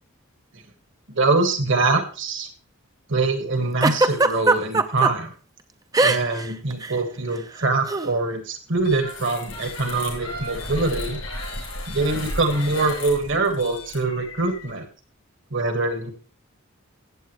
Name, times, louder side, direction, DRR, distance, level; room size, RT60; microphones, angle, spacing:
voice 1, 1.1-2.5 3.1-5.3 6.0-11.2 11.9-14.9 15.5-16.1, right 3 dB, 60° right, 7 dB, 1.8 m, -23 dB
Giggle, 3.8-5.1 5.9-6.5 6.7-6.9 7.9-8.1, right 2 dB, 15° right, 0.5 m, -19 dB
sound 1, 8.8-14.7, left 1 dB, 90° left, 6.1 m, -34 dB
14.5 x 8.3 x 3.2 m, 0.35 s
head